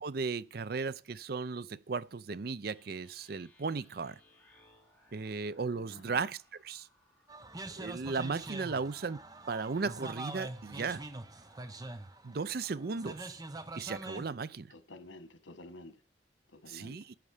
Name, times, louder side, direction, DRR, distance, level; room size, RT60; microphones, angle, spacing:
voice 1, 0.0-4.2 5.1-6.9 7.7-9.2 9.5-11.0 12.2-13.4 13.8-14.7 16.7-17.1, right 4 dB, 50° right, 0.5 m, -36 dB
sound 1, 2.6-12.1, left 1 dB, 10° left, 2.9 m, -66 dB
voice 2, 5.9-6.2 14.7-16.0 16.5-17.1, left 2 dB, 85° left, 1.5 m, -50 dB
sound 2, 7.3-14.4, right 2 dB, 20° right, 0.8 m, -44 dB
11.0 x 9.0 x 4.9 m
head